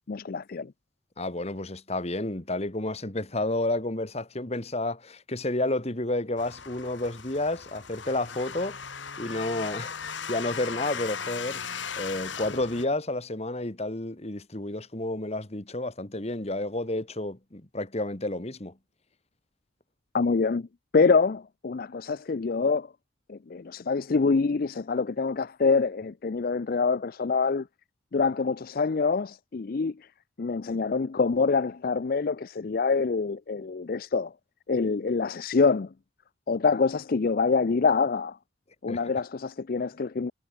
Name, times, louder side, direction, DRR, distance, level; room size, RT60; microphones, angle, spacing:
voice 1, 0.1-0.7 20.1-20.7 20.9-22.9 23.3-27.7 28.1-30.1 30.4-34.3 34.7-35.9 36.5-38.4 38.8-40.3, left 4 dB, 50° left, 0.5 m, -25 dB
voice 2, 1.2-11.6 12.0-18.8 38.9-39.0, left 2 dB, 35° left, 1.7 m, -31 dB
sound 1, 6.4-12.9, left 6 dB, 80° left, 2.7 m, -37 dB
head